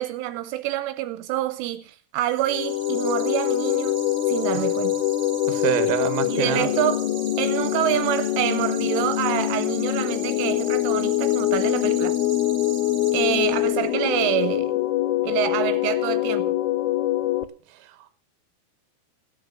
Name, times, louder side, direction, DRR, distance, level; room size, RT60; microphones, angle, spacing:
voice 1, 0.0-5.0 6.3-7.1 7.4-12.2 13.1-14.7 15.2-16.6, right 13 dB, 80° right, 3.2 m, -27 dB
sound 1, 2.2-14.0, right 7 dB, 40° right, 2.9 m, -40 dB
sound 2, 2.5-17.5, left 14 dB, 85° left, 3.4 m, -24 dB
voice 2, 5.4-6.7 17.7-18.1, right 12 dB, 65° right, 2.8 m, -27 dB
16.0 x 7.9 x 6.7 m
omnidirectional pair, 5.7 m